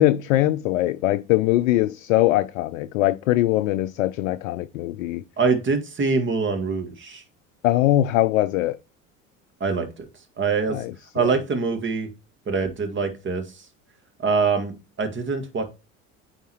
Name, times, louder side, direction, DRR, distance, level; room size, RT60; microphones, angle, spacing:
voice 1, 0.0-5.2 7.6-8.8 10.7-11.2, left 15 dB, 75° left, 0.5 m, -21 dB
voice 2, 5.4-7.2 9.6-9.9 10.4-10.8 11.1-12.1 12.5-13.5 14.2-15.6, right 4 dB, 30° right, 1.9 m, -24 dB
9.1 x 3.9 x 3.0 m
hypercardioid pair, 70°, 40 cm